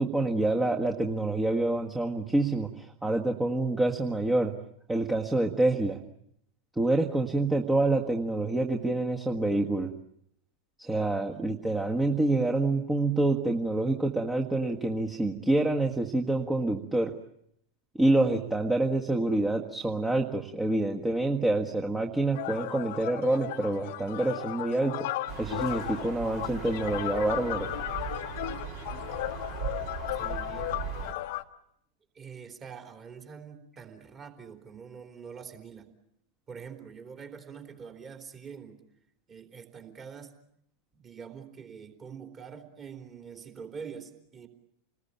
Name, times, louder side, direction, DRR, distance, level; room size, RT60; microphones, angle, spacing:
voice 1, 0.0-4.5 4.9-6.0 6.8-9.9 10.8-17.1 18.0-25.1 25.4-27.7, right 2 dB, 10° right, 2 dB, 1.7 m, -27 dB
sound 1, 22.3-31.4, left 16 dB, 50° left, 1.1 m, -35 dB
sound 2, 25.3-31.1, right 7 dB, 45° right, 3.0 m, -39 dB
voice 2, 30.2-30.7 32.2-35.9 36.5-38.8 39.3-40.3 40.9-44.5, right 6 dB, 25° right, 4 dB, 3.7 m, -45 dB
29.0 x 20.5 x 8.9 m, 0.73 s
figure-of-eight pair, 90°, 0 cm